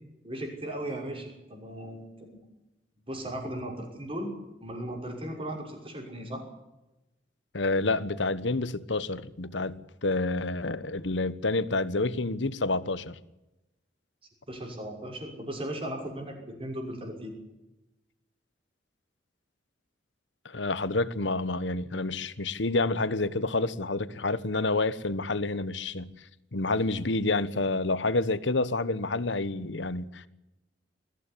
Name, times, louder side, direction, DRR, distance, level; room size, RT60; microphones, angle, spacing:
voice 1, 0.2-2.4 3.1-4.3 4.6-6.4 14.5-17.3, right 1 dB, 30° right, 2 dB, 6.1 m, -37 dB
voice 2, 7.5-13.2 20.4-26.1 26.5-30.3, left 2 dB, 80° left, 15 dB, 1.2 m, -28 dB
21.5 x 15.0 x 10.0 m, 0.99 s
head